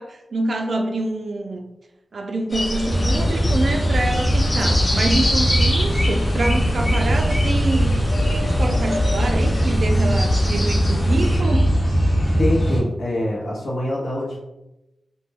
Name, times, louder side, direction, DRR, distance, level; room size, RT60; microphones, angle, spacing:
voice 1, 0.0-1.6 2.1-11.7, right 2 dB, 55° right, 4 dB, 0.3 m, -26 dB
sound 1, 2.5-11.4, left 1 dB, 30° left, 0.6 m, -26 dB
sound 2, 2.9-12.8, equal, 50° left, 0.9 m, -20 dB
voice 2, 12.4-14.4, left 1 dB, 80° left, -5 dB, 0.7 m, -24 dB
2.2 x 2.1 x 3.2 m, 0.93 s
wide cardioid pair, 150°, 0 cm